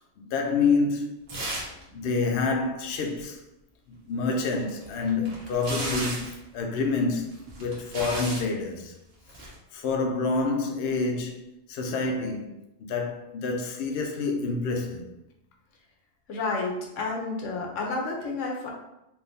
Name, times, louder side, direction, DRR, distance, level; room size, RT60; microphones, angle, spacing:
voice 1, 0.2-1.2 1.9-3.4 3.9-7.3 7.6-8.9 9.7-11.4 11.7-12.5 12.8-15.0, left 4 dB, 65° left, 0.7 m, -27 dB
sound 1, 1.3-1.8 2.1-2.2 4.6-6.4 7.3-8.5 9.3-9.6, right 1 dB, 55° right, 1.1 m, -35 dB
voice 2, 16.3-18.7, left 3 dB, 80° left, 1.1 m, -30 dB
3.6 x 2.6 x 2.6 m
omnidirectional pair, 1.3 m